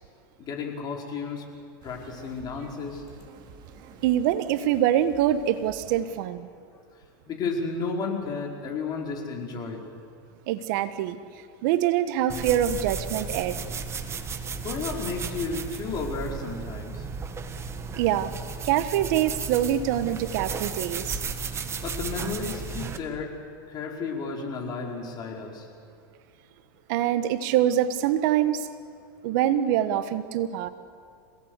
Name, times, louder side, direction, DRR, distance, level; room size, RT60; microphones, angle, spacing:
voice 1, 0.4-1.4 1.8-3.0 7.3-9.9 14.6-17.0 21.8-23.3 23.7-25.7, left 4 dB, 35° left, 0 dB, 5.2 m, -32 dB
sound 1, 1.8-6.2, right 6 dB, 45° right, 2.7 m, -49 dB
voice 2, 4.0-6.5 10.5-11.2 11.6-13.6 18.0-18.3 18.6-21.2 26.9-28.7 29.2-30.7, right 11 dB, 60° right, 12 dB, 1.3 m, -24 dB
sound 2, 12.3-23.0, right 5 dB, 25° right, 1.7 m, -34 dB
26.5 x 18.0 x 8.3 m, 2.2 s
hypercardioid pair, 115°, 11 cm